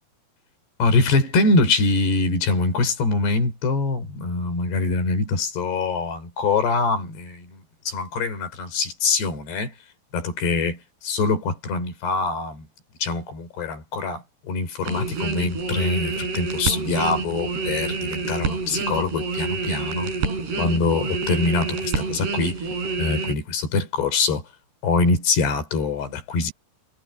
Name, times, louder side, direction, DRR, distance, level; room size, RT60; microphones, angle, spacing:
voice 1, 0.8-9.7 10.1-10.7 11.1-12.7 13.0-20.1 20.6-22.6 23.0-24.4 24.8-26.5, left 3 dB, 75° left, 6.3 m, -24 dB
sound 1, 14.9-23.3, right 4 dB, 70° right, 8.1 m, -27 dB
omnidirectional pair, 4.8 m